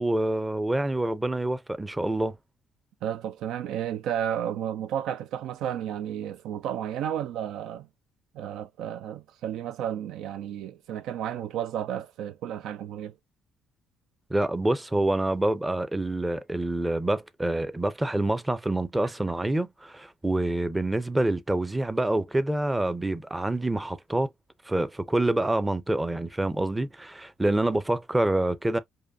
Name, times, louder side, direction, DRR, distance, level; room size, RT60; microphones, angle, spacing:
voice 1, 0.0-2.4 14.3-24.3 24.7-28.8, right 1 dB, 15° right, 0.6 m, -26 dB
voice 2, 3.0-7.9 8.3-13.1, right 10 dB, 75° right, 0.3 m, -32 dB
4.9 x 2.2 x 2.6 m
supercardioid pair, 65°, 0 cm